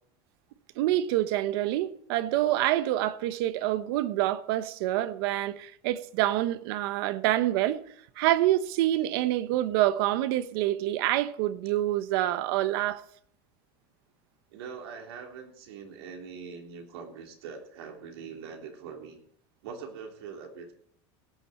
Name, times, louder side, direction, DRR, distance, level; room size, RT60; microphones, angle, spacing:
voice 1, 0.8-7.8 8.2-13.0, right 14 dB, 70° right, 0.9 m, -27 dB
voice 2, 14.5-19.2 19.6-20.7, right 6 dB, 90° right, 3.4 m, -42 dB
17.0 x 10.0 x 4.3 m
supercardioid pair, 155°, 13 cm